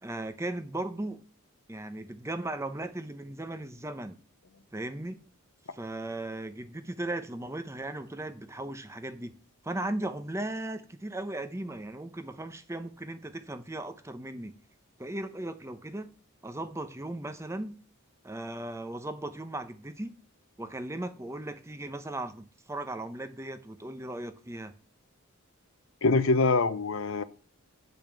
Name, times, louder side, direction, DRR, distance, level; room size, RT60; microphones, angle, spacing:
voice 1, 0.0-1.2 1.7-4.2 4.7-5.2 5.7-9.3 9.6-14.6 15.0-16.1 16.4-17.8 18.2-20.2 20.6-24.7, right 1 dB, 10° right, 0.7 m, -37 dB
voice 2, 26.0-27.2, left 3 dB, 60° left, 0.7 m, -24 dB
9.0 x 5.3 x 7.6 m
head